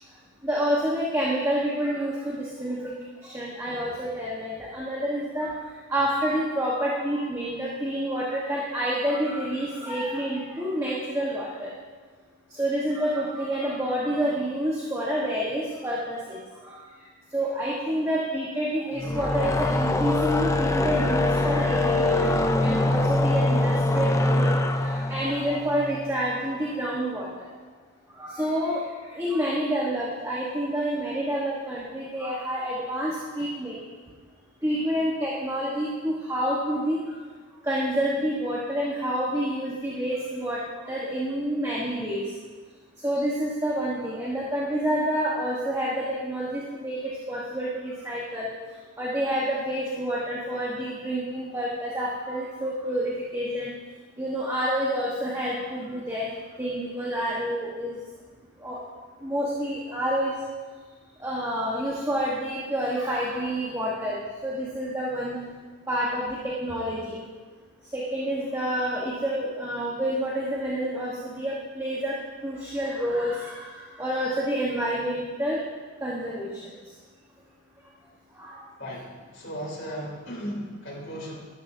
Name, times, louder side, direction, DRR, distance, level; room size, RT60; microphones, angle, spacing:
voice 1, 0.4-2.9 3.2-5.5 5.9-11.7 12.5-16.8 17.3-27.3 28.2-33.8 34.6-37.0 37.6-42.2 43.0-47.0 47.3-48.5 49.0-53.7 54.2-56.3 56.6-58.0 58.6-58.8 59.2-60.3 61.2-65.4 65.9-67.2 67.9-72.1 72.4-75.6 76.0-76.7 78.4-78.6, equal, 15° right, -5 dB, 1.2 m, -28 dB
sound 1, 19.0-26.3, left 2 dB, 15° left, 0.4 m, -24 dB
voice 2, 78.8-81.4, equal, 55° left, -4 dB, 3.3 m, -36 dB
13.0 x 12.5 x 2.7 m, 1.5 s
head